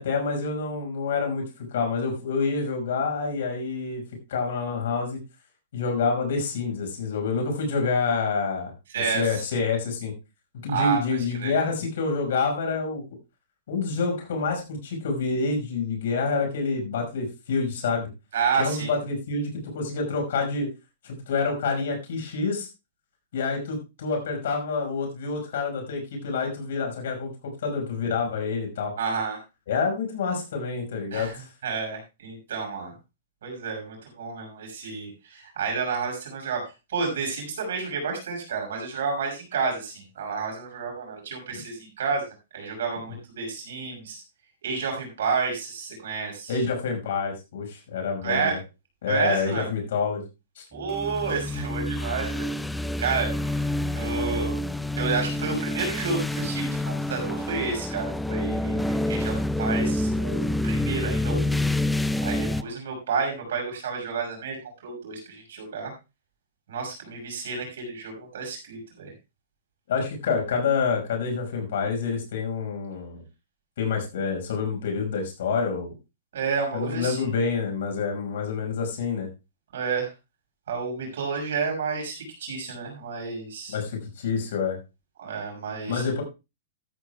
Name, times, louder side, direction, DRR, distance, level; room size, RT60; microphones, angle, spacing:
voice 1, 0.0-4.0 4.3-5.2 5.7-10.1 10.6-13.0 13.7-18.1 18.6-20.7 21.0-22.7 23.3-28.9 29.7-31.5 41.5-41.6 46.5-48.6 49.0-50.2 50.6-50.7 69.9-73.2 73.8-75.9 76.7-79.3 83.7-84.8 85.9-86.2, left 4 dB, 65° left, 3 dB, 5.5 m, -27 dB
voice 2, 8.9-9.5 10.7-11.0 11.4-11.5 18.3-18.9 29.0-29.4 31.1-32.9 33.4-44.2 44.6-46.6 48.2-48.6 49.1-49.7 50.7-52.5 53.0-54.5 55.0-61.6 62.2-65.9 66.7-69.1 76.3-77.3 79.7-80.1 80.7-83.8 85.2-86.0, right 5 dB, 70° right, 2 dB, 5.9 m, -30 dB
sound 1, 50.7-62.6, left 1 dB, 5° left, 0.6 m, -27 dB
14.5 x 14.0 x 2.3 m, 0.27 s
hypercardioid pair, 115°, 0 cm